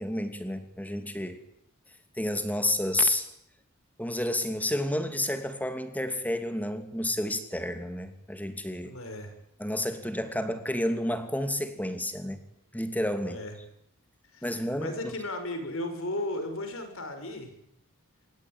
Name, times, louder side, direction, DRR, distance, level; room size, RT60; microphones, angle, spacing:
voice 1, 0.0-1.4 2.2-3.3 4.0-9.0 9.6-12.4 12.7-13.4 14.4-14.9, left 1 dB, 5° left, 9 dB, 2.7 m, -30 dB
voice 2, 8.8-9.3 13.2-13.5 14.3-17.5, left 1 dB, 70° left, 7 dB, 6.3 m, -35 dB
26.5 x 23.0 x 9.3 m, 0.75 s
head